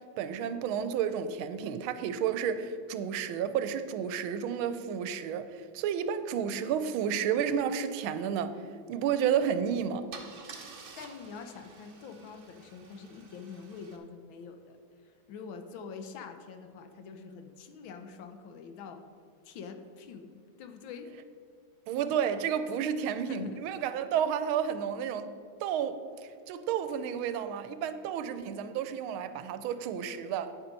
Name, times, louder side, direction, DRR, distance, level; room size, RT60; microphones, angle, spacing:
voice 1, 0.0-8.6 8.9-10.1 21.9-25.3 25.6-30.5, right 8 dB, 85° right, 1.5 m, -31 dB
Car / Engine starting / Idling, 9.4-9.6 10.1-14.0, right 4 dB, 70° right, 0.5 m, -50 dB
voice 2, 11.0-14.8 15.0-19.0 19.4-21.1 23.3-23.6, left 5 dB, 75° left, 1.5 m, -45 dB
9.1 x 7.4 x 5.2 m
omnidirectional pair, 2.2 m